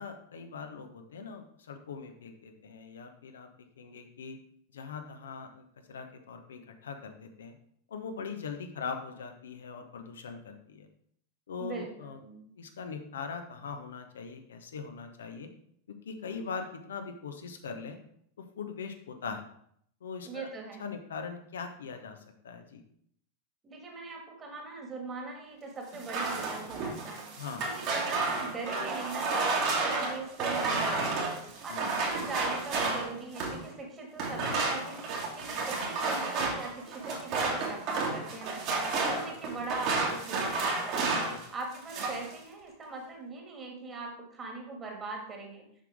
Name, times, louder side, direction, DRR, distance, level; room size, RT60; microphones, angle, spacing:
voice 1, 0.0-3.5 3.8-4.4 4.7-7.6 7.9-10.9 11.5-12.2 12.6-15.5 15.9-18.0 18.6-19.4 20.0-20.5 20.8-22.2 22.4-22.8 27.4-27.7 31.5-31.8 35.6-35.7 41.3-41.4, left 5 dB, 65° left, 6 dB, 0.8 m, -41 dB
voice 2, 11.6-12.5 20.2-20.8 23.6-27.2 27.6-31.3 31.6-35.1 35.3-38.6 39.0-41.1 41.5-45.6, right 3 dB, 20° right, 1 dB, 1.9 m, -41 dB
sound 1, 25.9-33.6 34.2-41.4 41.7-42.3, right 3 dB, 40° right, 2.0 m, -31 dB
7.4 x 6.0 x 3.5 m, 0.67 s
figure-of-eight pair, 90°, 0 cm